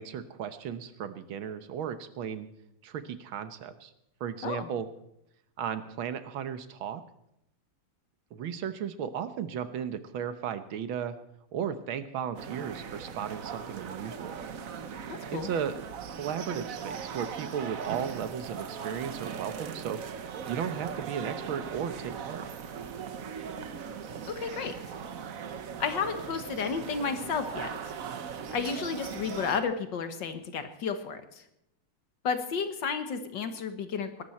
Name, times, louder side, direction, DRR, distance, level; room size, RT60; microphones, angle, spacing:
voice 1, 0.0-2.5 2.8-3.9 4.2-4.9 5.6-7.0 8.3-11.2 11.5-14.4 15.3-15.8 16.1-20.0 20.5-22.5, right 8 dB, 75° right, 11 dB, 1.8 m, -35 dB
sound 1, 12.3-29.6, right 7 dB, 50° right, 1.1 m, -39 dB
voice 2, 15.1-15.5 24.3-24.7 25.8-27.8 28.5-31.4 32.2-34.2, left 5 dB, 65° left, 9 dB, 1.9 m, -32 dB
20.5 x 12.5 x 4.3 m, 0.80 s
omnidirectional pair, 2.3 m